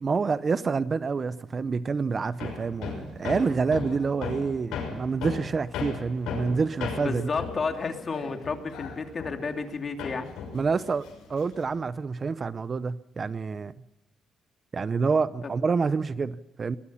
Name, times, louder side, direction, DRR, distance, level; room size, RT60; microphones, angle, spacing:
voice 1, 0.0-7.3 10.5-13.7 14.7-16.8, right 4 dB, 40° right, 0.7 m, -27 dB
Hammer, 2.4-9.7 10.0-11.8, left 6 dB, 90° left, 6.5 m, -36 dB
voice 2, 7.0-10.3, left 4 dB, 40° left, 3.0 m, -31 dB
21.5 x 21.5 x 5.7 m
cardioid pair, 90°, 0 cm